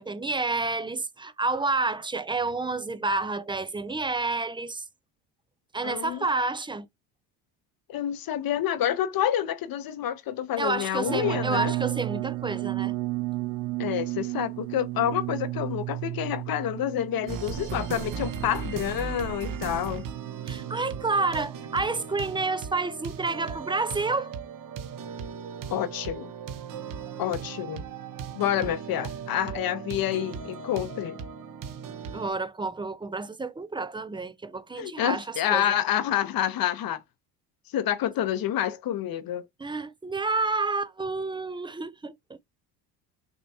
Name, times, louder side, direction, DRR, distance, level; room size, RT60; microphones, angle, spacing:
voice 1, 0.0-4.8 5.7-6.9 10.6-13.0 20.5-24.3 32.1-35.8 39.6-42.4, right 3 dB, 10° right, 0.5 m, -29 dB
voice 2, 5.8-6.3 7.9-11.7 13.8-20.1 25.7-26.3 27.2-27.8 28.3-31.2 34.8-37.0 37.7-39.5, left 11 dB, 50° left, 0.9 m, -28 dB
sound 1, 11.1-22.0, right 18 dB, 70° right, 0.7 m, -34 dB
sound 2, 17.3-32.3, right 6 dB, 45° right, 1.0 m, -37 dB
6.3 x 3.0 x 2.8 m
supercardioid pair, 75°, 45 cm